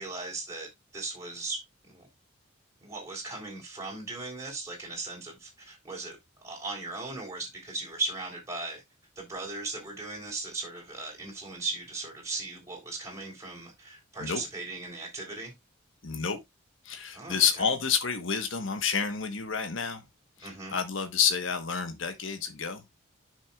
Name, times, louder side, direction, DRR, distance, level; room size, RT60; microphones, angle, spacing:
voice 1, 0.0-2.1 2.8-8.8 9.2-15.5 17.1-17.6 20.4-20.8, right 3 dB, 15° right, 3.7 m, -38 dB
voice 2, 16.0-16.4 16.8-20.0 20.4-22.8, left 6 dB, 70° left, 1.2 m, -29 dB
10.0 x 6.3 x 2.4 m
head